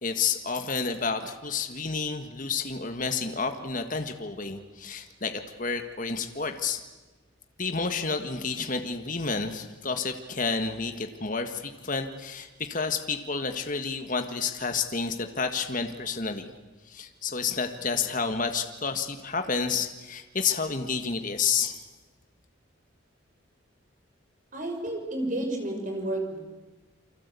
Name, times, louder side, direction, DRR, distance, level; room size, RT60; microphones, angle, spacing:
voice 1, 0.0-6.8 7.6-16.5 16.9-21.8, left 5 dB, 40° left, 6 dB, 1.6 m, -30 dB
voice 2, 24.5-26.4, right 1 dB, 40° right, 3 dB, 6.2 m, -31 dB
29.0 x 24.5 x 8.4 m, 1.2 s
head